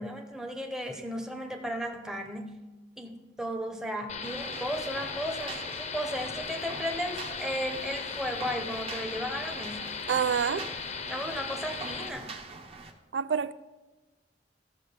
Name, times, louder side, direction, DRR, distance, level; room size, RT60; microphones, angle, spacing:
voice 1, 0.0-2.6 3.0-9.9 11.1-12.3, equal, 5° right, 3 dB, 0.8 m, -35 dB
sound 1, 4.1-12.1, left 6 dB, 40° left, 0.7 m, -37 dB
sound 2, 4.2-12.9, right 3 dB, 35° right, 1.0 m, -44 dB
voice 2, 10.1-10.7 13.1-13.5, right 7 dB, 75° right, 15 dB, 0.4 m, -27 dB
13.5 x 6.3 x 5.1 m, 1.2 s
head